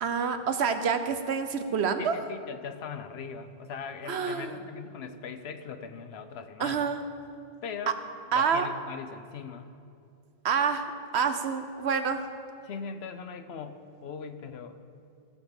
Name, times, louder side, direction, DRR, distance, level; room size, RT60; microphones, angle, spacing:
voice 1, 0.0-2.2 4.1-4.6 6.6-7.0 8.3-8.7 10.4-12.2, right 6 dB, 90° right, 8 dB, 1.1 m, -27 dB
voice 2, 2.0-6.9 7.6-8.0 8.3-9.7 12.6-14.8, left 6 dB, 80° left, 9 dB, 1.0 m, -40 dB
16.5 x 5.8 x 7.2 m, 2.5 s
omnidirectional pair, 1.1 m